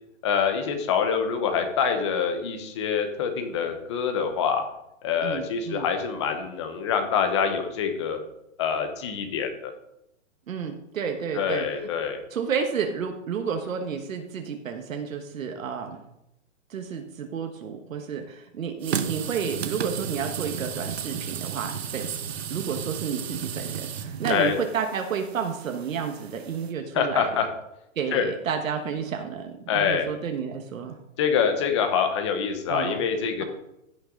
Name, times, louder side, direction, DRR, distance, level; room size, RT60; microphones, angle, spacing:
voice 1, 0.2-4.6 5.0-8.2 8.6-9.7 11.3-12.2 24.3-24.6 26.9-27.5 28.1-28.3 29.7-30.1 31.2-33.4, left 7 dB, 20° left, 6 dB, 0.9 m, -25 dB
voice 2, 5.2-5.8 10.5-11.7 12.3-16.0 16.7-22.1 22.5-27.4 28.0-31.0 32.7-33.0, right 6 dB, 80° right, 4 dB, 1.4 m, -31 dB
sound 1, 18.8-26.7, right 8 dB, 50° right, 0.9 m, -33 dB
15.5 x 6.0 x 3.8 m, 0.85 s
hypercardioid pair, 175°, 40 cm